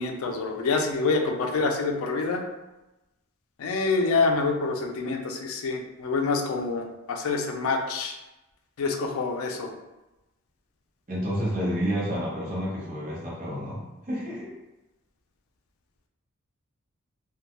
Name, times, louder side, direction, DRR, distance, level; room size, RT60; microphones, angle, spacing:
voice 1, 0.0-2.4 3.6-8.1 8.8-9.7, left 4 dB, 80° left, 3 dB, 0.4 m, -26 dB
voice 2, 11.1-14.5, equal, 40° right, -6 dB, 0.8 m, -30 dB
2.2 x 2.2 x 2.8 m, 1.0 s
head